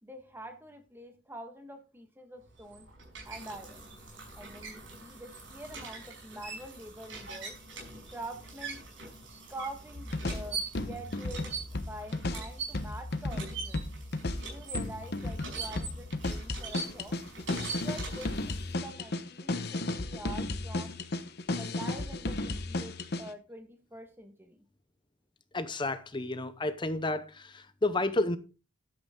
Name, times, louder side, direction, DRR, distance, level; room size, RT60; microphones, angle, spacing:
voice 1, 0.0-2.9 3.2-3.9 4.3-7.6 8.1-8.8 9.5-11.5 11.8-13.8 14.4-17.2 17.7-21.0 21.5-24.6, right 1 dB, 10° right, 1.5 m, -46 dB
sound 1, 2.5-18.7, right 4 dB, 65° right, 5.7 m, -42 dB
sound 2, 10.0-23.3, left 2 dB, 50° left, 1.0 m, -34 dB
voice 2, 25.5-28.4, left 2 dB, 25° left, 0.7 m, -31 dB
12.0 x 8.0 x 3.7 m
head